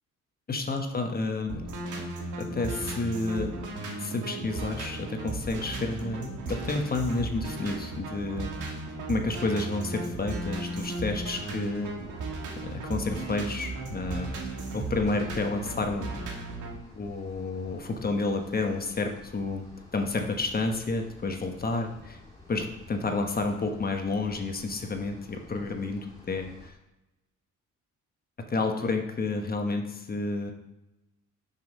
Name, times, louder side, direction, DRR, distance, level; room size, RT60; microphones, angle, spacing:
voice 1, 0.5-1.6 2.4-3.5 4.0-8.7 9.1-11.9 12.6-14.3 14.7-16.1 16.9-19.6 19.9-22.2 22.5-26.7 28.5-30.5, left 3 dB, 30° left, 4 dB, 1.2 m, -30 dB
sound 1, 1.5-16.7, right 3 dB, 80° right, 1.6 m, -36 dB
sound 2, 10.0-26.7, left 2 dB, 15° left, 2.6 m, -50 dB
6.3 x 5.6 x 5.3 m, 0.97 s
cardioid pair, 90°, 30 cm